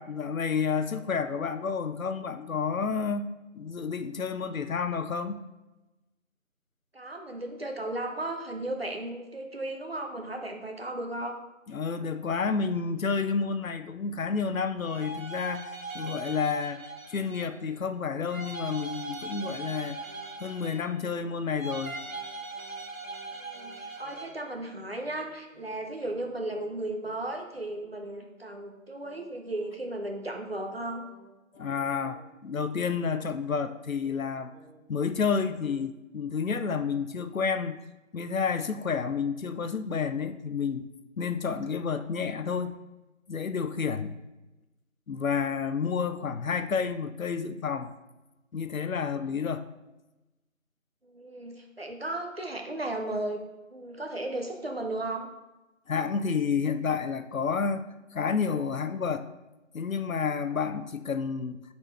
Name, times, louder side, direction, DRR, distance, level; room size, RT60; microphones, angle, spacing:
voice 1, 0.0-3.3 3.6-5.4 11.7-20.0 20.4-22.0 31.6-34.6 34.9-37.8 38.1-40.9 41.2-42.8 43.3-44.2 45.1-47.9 48.5-49.7 55.9-59.3 59.7-61.6, left 5 dB, 80° left, 10 dB, 0.6 m, -30 dB
voice 2, 6.9-11.4 23.4-31.1 51.0-53.4 53.7-55.3, right 1 dB, 45° right, 3 dB, 0.8 m, -35 dB
sound 1, 14.8-17.6 18.3-21.1 21.6-24.5, right 2 dB, 80° right, 1.0 m, -40 dB
sound 2, 20.0-20.3 20.5-20.8 21.0-21.3 21.5-21.8 22.0-22.3 22.5-22.8 23.0-23.3 23.5-23.8 24.0-24.3 24.5-24.8 25.0-25.3 25.5-25.8 26.0-26.3 26.5-26.8 27.0-27.3 27.5-27.8 28.0-28.3 28.5-28.8 29.0-29.3 29.5-29.8 30.0-30.3 30.5-30.8 31.0-31.3 31.5-31.8 32.0-32.3 32.5-32.8 33.0-33.3 33.5-33.8 34.0-34.3 34.5-34.8 35.0-35.3 35.5-35.8, right 1 dB, 10° right, 2.0 m, -56 dB
7.8 x 4.2 x 3.3 m, 1.0 s
figure-of-eight pair, 175°, 40 cm